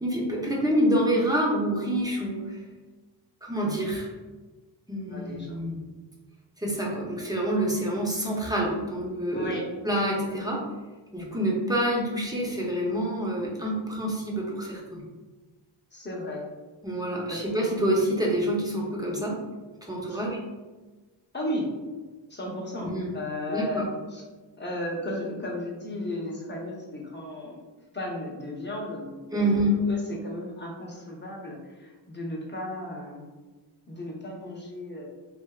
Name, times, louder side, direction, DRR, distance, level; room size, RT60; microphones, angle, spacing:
voice 1, 0.0-2.6 3.4-4.1 4.9-5.8 6.6-9.6 9.8-10.6 11.1-15.0 16.8-19.4 19.9-20.4 22.8-23.2 23.5-23.9 29.3-29.8, right 1 dB, 10° right, -3 dB, 0.7 m, -27 dB
voice 2, 5.1-5.6 9.3-9.6 15.9-16.5 17.3-17.4 20.1-20.2 21.3-21.7 22.3-24.2 24.6-27.6 27.9-29.5 29.9-33.2 33.9-35.0, left 1 dB, 25° left, -3 dB, 0.8 m, -34 dB
3.3 x 2.5 x 2.3 m, 1.3 s
wide cardioid pair, 75°, 47 cm